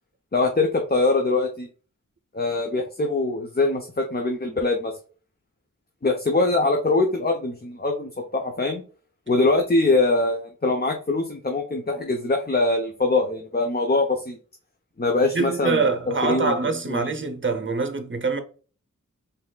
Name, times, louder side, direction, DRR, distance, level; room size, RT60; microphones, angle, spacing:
voice 1, 0.3-1.7 2.3-4.9 6.0-8.8 9.3-14.4 15.0-15.8 16.2-16.6 16.9-17.1, left 2 dB, 30° left, 0.7 m, -23 dB
voice 2, 15.3-18.4, right 4 dB, 40° right, 0.8 m, -24 dB
4.1 x 3.5 x 2.3 m
wide cardioid pair, 60°, 32 cm